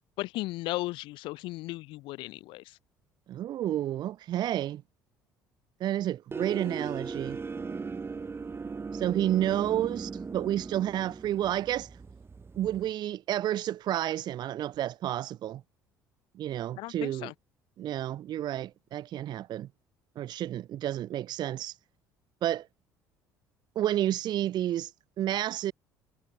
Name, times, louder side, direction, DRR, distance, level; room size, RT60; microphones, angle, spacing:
voice 1, 0.2-2.8 16.8-17.3, left 19 dB, 65° left, 0.9 m, -36 dB
voice 2, 3.3-4.8 5.8-7.4 8.9-12.0 12.6-15.6 16.4-17.3 17.8-19.7 20.2-21.8 22.4-22.7 23.8-24.9 25.2-25.7, right 12 dB, 50° right, 0.6 m, -30 dB
sound 1, 6.3-12.9, right 4 dB, 25° right, 1.1 m, -38 dB
hypercardioid pair, 60°, 9 cm